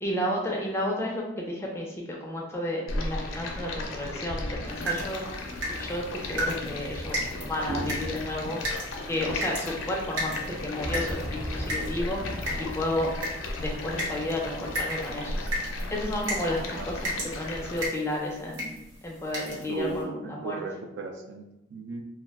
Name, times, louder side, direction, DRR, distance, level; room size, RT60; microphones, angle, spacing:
voice 1, 0.0-5.3 5.7-8.6 9.1-12.3 12.6-13.1 13.6-15.5 15.9-18.7 19.0-20.6, left 1 dB, 15° left, -1 dB, 0.4 m, -32 dB
Stream, 2.9-17.9, left 2 dB, 85° left, 0.4 m, -36 dB
sound 1, 4.7-20.0, equal, 80° right, 0.9 m, -36 dB
Fireworks, 10.8-15.9, equal, 20° right, 0.9 m, -40 dB
voice 2, 19.5-21.4 21.7-22.0, right 4 dB, 60° right, 4 dB, 0.3 m, -36 dB
2.3 x 2.1 x 3.4 m, 0.90 s
head